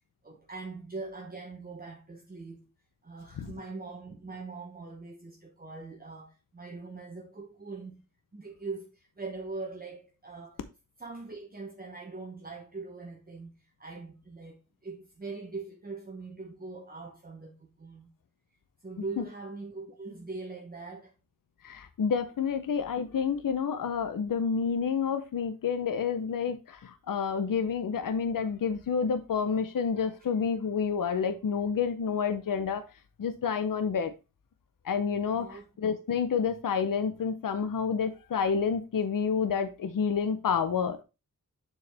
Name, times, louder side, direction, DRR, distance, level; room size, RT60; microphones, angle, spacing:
voice 1, 0.2-2.6 3.0-8.0 8.3-10.6 11.0-18.1 18.8-21.1 35.3-35.7, right 3 dB, 25° right, 1.0 m, -42 dB
voice 2, 21.6-32.8 33.2-34.1 34.8-41.0, left 6 dB, 70° left, 0.7 m, -29 dB
6.7 x 4.7 x 3.4 m
wide cardioid pair, 75°, 34 cm